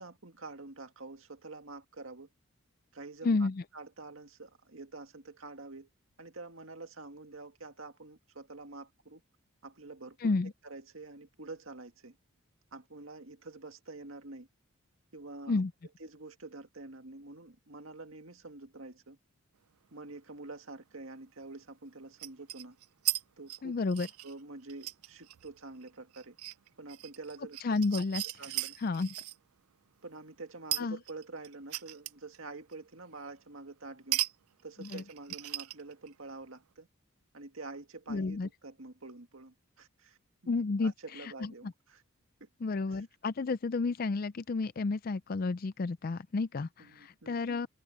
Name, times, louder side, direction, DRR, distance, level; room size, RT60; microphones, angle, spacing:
voice 1, 0.0-2.3 2.9-5.9 6.2-9.2 9.6-12.2 12.7-14.5 15.1-15.6 16.0-19.2 19.9-22.8 23.4-23.8 24.2-26.4 26.8-28.0 28.4-28.8 30.0-34.2 34.6-36.9 37.3-40.2 40.4-40.5 40.8-42.0 42.4-42.5 42.9-43.0 46.8-47.6, right 3 dB, 65° right, 2.0 m, -47 dB
voice 2, 3.2-3.6 10.2-10.5 15.5-15.7 23.6-24.1 27.6-28.2 28.8-29.1 30.8-31.0 34.8-35.0 38.1-38.5 40.5-41.5 42.6-47.7, left 3 dB, 40° left, 0.4 m, -31 dB
sound 1, 20.1-20.2 22.2-23.2 23.5-29.4 30.7-32.4 32.7-32.8 34.1-34.3 34.6-36.1, right 17 dB, 85° right, 0.4 m, -37 dB
head